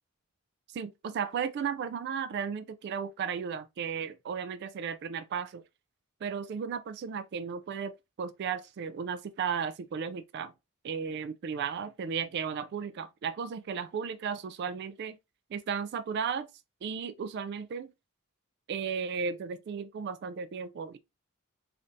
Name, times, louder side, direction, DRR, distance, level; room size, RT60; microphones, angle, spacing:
voice 1, 0.7-5.6 6.2-10.5 10.8-15.2 15.5-16.5 16.8-17.9 18.7-21.0, right 6 dB, 50° right, 0.3 m, -35 dB
3.7 x 3.4 x 2.6 m
head